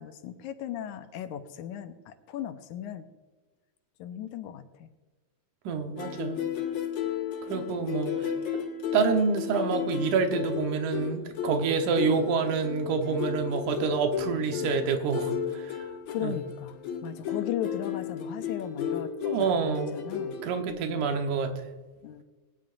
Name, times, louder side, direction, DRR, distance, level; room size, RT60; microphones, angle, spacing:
voice 1, 0.0-3.1 4.0-4.9 7.5-7.7 16.1-16.8 17.0-19.1 19.5-21.1 22.0-22.2, left 10 dB, 90° left, 8 dB, 2.3 m, -37 dB
voice 2, 5.7-6.4 7.4-8.6 8.9-15.9 16.2-16.4 19.3-19.9 20.4-21.6, right 5 dB, 80° right, 5 dB, 2.6 m, -28 dB
sound 1, 6.0-20.7, left 7 dB, 65° left, 2.9 m, -34 dB
21.5 x 10.5 x 2.6 m, 1.3 s
omnidirectional pair, 3.4 m